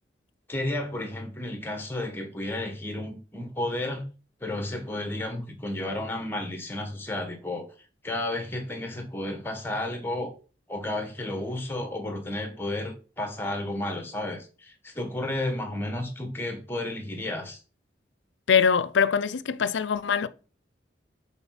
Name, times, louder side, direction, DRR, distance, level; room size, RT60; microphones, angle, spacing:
voice 1, 0.5-4.1 4.4-10.3 10.7-17.6, left 1 dB, 10° left, 1.3 m, -32 dB
voice 2, 18.5-20.3, left 6 dB, 85° left, 0.5 m, -23 dB
7.0 x 4.0 x 5.8 m
head